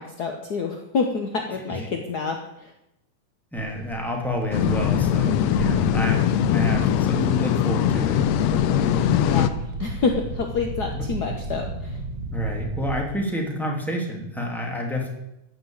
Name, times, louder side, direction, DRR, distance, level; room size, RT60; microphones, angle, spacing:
voice 1, 0.0-2.7 9.3-12.0, left 4 dB, 60° left, 3 dB, 1.0 m, -28 dB
voice 2, 3.5-8.2 10.9-11.0 12.3-15.1, equal, ahead, 0 dB, 2.5 m, -29 dB
sound 1, 3.5-9.0 9.3-11.0, right 6 dB, 80° right, 2.3 m, -38 dB
sound 2, 4.5-9.5, left 10 dB, 75° left, 1.8 m, -21 dB
sound 3, 8.1-13.0, right 2 dB, 55° right, 2.8 m, -33 dB
14.5 x 6.7 x 8.8 m, 0.87 s
omnidirectional pair, 3.3 m